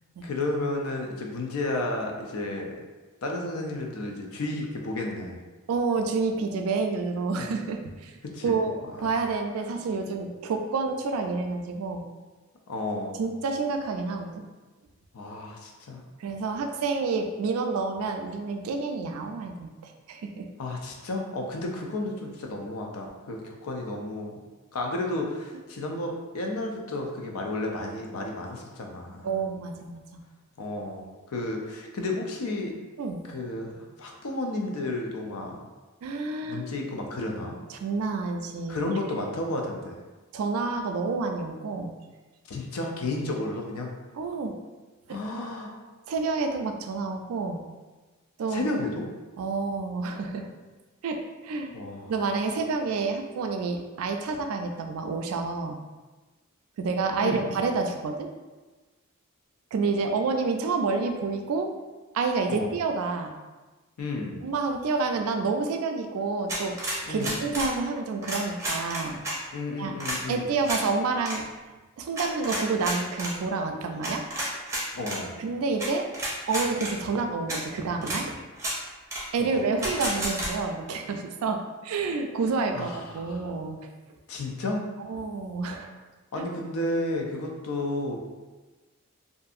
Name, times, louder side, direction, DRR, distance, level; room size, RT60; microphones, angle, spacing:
voice 1, 0.2-2.7 3.2-5.4 8.2-8.6 8.9-9.1 12.7-13.2 15.1-16.0 20.6-24.4 24.7-29.3 30.6-32.7 33.3-35.6 36.4-37.6 38.7-40.0 42.5-43.9 45.1-45.7 48.5-49.1 51.7-52.1 57.2-57.5 62.5-62.7 64.0-64.4 67.1-67.4 69.5-70.5 74.9-75.4 79.4-79.6 82.7-83.5 84.3-84.8 86.3-88.2, left 2 dB, 85° left, 1 dB, 0.5 m, -32 dB
voice 2, 5.7-8.1 8.4-12.1 13.2-14.4 16.2-20.5 29.2-30.2 33.0-33.2 36.0-36.6 37.7-38.9 40.3-41.9 44.1-44.5 45.1-45.2 46.1-47.6 48.4-48.7 49.4-50.5 51.0-51.7 52.1-55.8 56.8-58.3 59.7-61.7 62.1-63.4 64.4-66.8 67.1-69.2 69.7-69.9 70.3-71.4 72.0-74.2 75.4-76.1 76.5-78.4 79.3-83.8 85.1-85.9, right 4 dB, 80° right, 5 dB, 0.3 m, -29 dB
sound 1, 66.5-67.7 68.2-69.4 70.0-70.2 70.6-70.8 71.2-71.4 72.2-73.3 74.0-75.2 75.8-75.9 76.1-76.9 77.5-77.6 78.0-78.2 78.6-78.8 79.1-79.2 79.8-80.5, right 1 dB, 15° right, 0.5 m, -31 dB
2.6 x 2.4 x 2.4 m, 1.2 s
head